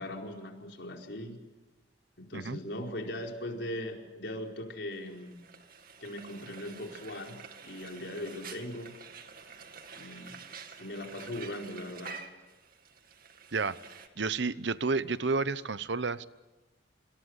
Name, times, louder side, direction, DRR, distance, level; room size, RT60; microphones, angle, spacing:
voice 1, 0.0-1.4 2.2-5.4 6.0-7.4 7.6-8.9 9.9-10.4 10.8-12.2, left 1 dB, 65° left, 1 dB, 4.7 m, -39 dB
Frying (food), 4.9-14.1, right 5 dB, 50° right, 2.2 m, -49 dB
voice 2, 14.2-16.2, right 4 dB, 70° right, 16 dB, 0.9 m, -30 dB
27.0 x 26.5 x 8.1 m, 1.2 s
head